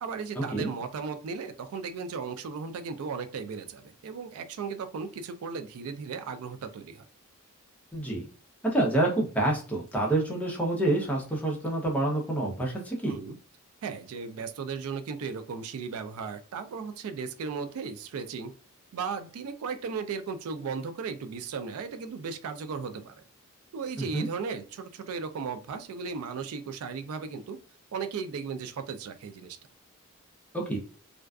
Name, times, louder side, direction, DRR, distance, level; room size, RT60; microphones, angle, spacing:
voice 1, 0.0-7.0 13.0-13.4 13.8-18.5 18.9-23.1 23.7-27.6 27.9-29.6, right 5 dB, 75° right, 9 dB, 0.3 m, -36 dB
voice 2, 7.9-8.2 8.7-13.1 24.0-24.3 30.5-30.8, right 1 dB, 5° left, -2 dB, 0.6 m, -27 dB
2.4 x 2.3 x 2.3 m, 0.39 s
head